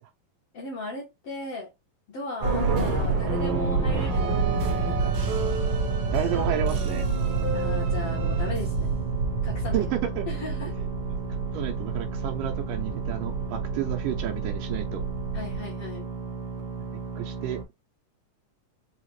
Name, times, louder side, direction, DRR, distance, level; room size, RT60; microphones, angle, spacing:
voice 1, 0.5-1.7 2.1-5.3 7.5-8.9 9.4-9.9 10.3-10.7 15.3-16.1, left 2 dB, 60° left, 1.7 m, -37 dB
sound 1, 2.4-17.6, right 4 dB, 60° right, 1.4 m, -28 dB
voice 2, 6.1-7.1 9.7-10.3 11.1-11.2 11.5-15.0 17.2-17.6, right 11 dB, 75° right, 2.1 m, -31 dB
5.6 x 2.4 x 3.1 m
omnidirectional pair, 4.0 m